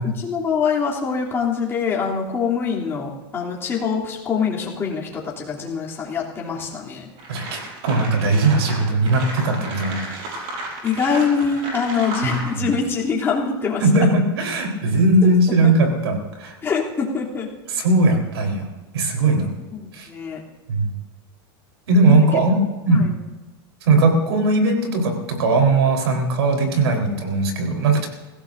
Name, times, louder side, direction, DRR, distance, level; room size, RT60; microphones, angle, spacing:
voice 1, 0.0-7.1 10.8-13.8 15.2-15.3 15.6-15.7 16.6-17.5 19.7-20.4 22.1-22.3 22.5-22.6 22.9-23.1, left 6 dB, 20° left, -5 dB, 3.1 m, -24 dB
sound 1, 6.7-6.8 7.2-12.5, right 2 dB, 50° right, 6.3 m, -33 dB
voice 2, 7.3-10.1 12.2-12.7 13.8-16.5 17.7-18.6 18.9-19.5 19.9-20.1 20.7-20.9 21.9-22.5 22.8-23.1 23.9-28.1, right 2 dB, 85° right, 3 dB, 4.0 m, -19 dB
23.5 x 16.5 x 2.7 m, 1.2 s
supercardioid pair, 140°, 13 cm